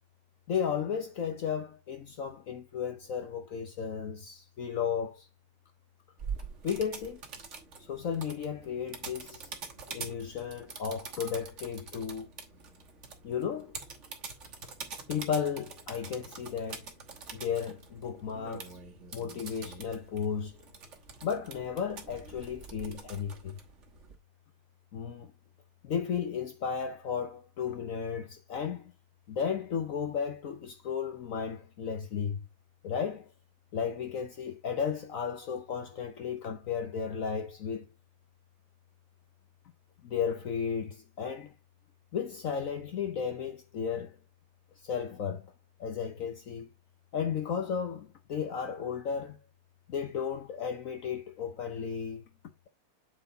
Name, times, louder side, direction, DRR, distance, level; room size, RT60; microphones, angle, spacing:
voice 1, 0.5-5.3 6.6-7.2 7.8-9.5 9.9-12.3 13.2-13.7 15.1-16.9 17.3-18.8 19.1-20.6 21.2-23.6 24.9-25.3 25.8-28.9 29.3-32.4 32.8-33.3 33.7-37.9 40.0-41.5 42.1-44.2 44.8-45.5 45.8-46.7 47.1-49.4 49.9-52.2, left 7 dB, 75° left, 0.7 m, -34 dB
sound 1, 6.2-24.2, right 5 dB, 40° right, 1.3 m, -45 dB
8.0 x 4.1 x 3.9 m
omnidirectional pair, 2.4 m